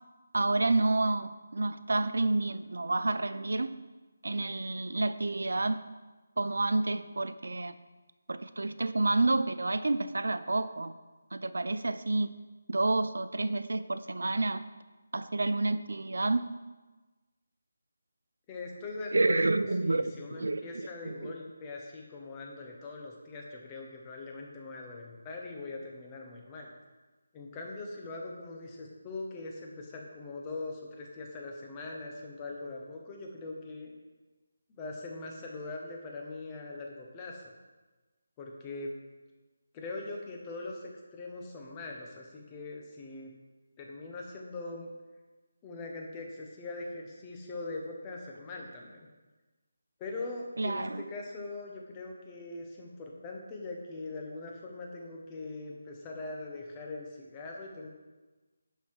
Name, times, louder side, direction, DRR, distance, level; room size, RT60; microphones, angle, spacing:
voice 1, 0.3-3.7 4.2-5.8 6.4-7.8 8.3-10.9 11.3-12.3 12.7-14.6 15.1-16.5 19.1-21.3 50.6-51.0, right 2 dB, 80° right, 12 dB, 0.6 m, -29 dB
voice 2, 18.5-19.5 19.8-26.7 27.3-33.9 34.8-37.5 38.4-38.9 39.7-43.3 43.8-44.9 45.6-49.1 50.0-57.9, left 2 dB, 15° left, 0 dB, 1.0 m, -41 dB
11.5 x 5.6 x 4.7 m, 1.2 s
figure-of-eight pair, 175°, 0 cm